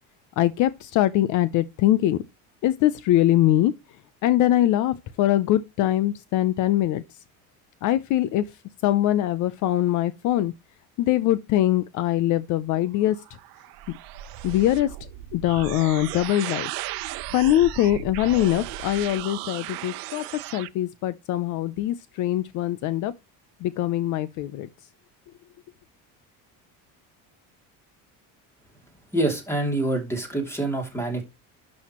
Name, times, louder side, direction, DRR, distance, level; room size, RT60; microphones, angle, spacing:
voice 1, 0.4-2.2 2.6-3.7 4.2-7.0 7.8-8.4 8.8-10.5 11.0-13.2 14.4-14.9 15.3-16.7 17.3-23.1 23.6-24.7, left 13 dB, 60° left, 0.7 m, -22 dB
sound 1, 13.0-20.7, right 14 dB, 80° right, 0.8 m, -36 dB
voice 2, 29.1-31.2, right 2 dB, 5° left, 2.9 m, -26 dB
11.5 x 6.4 x 3.0 m
cardioid pair, 160°, 35 cm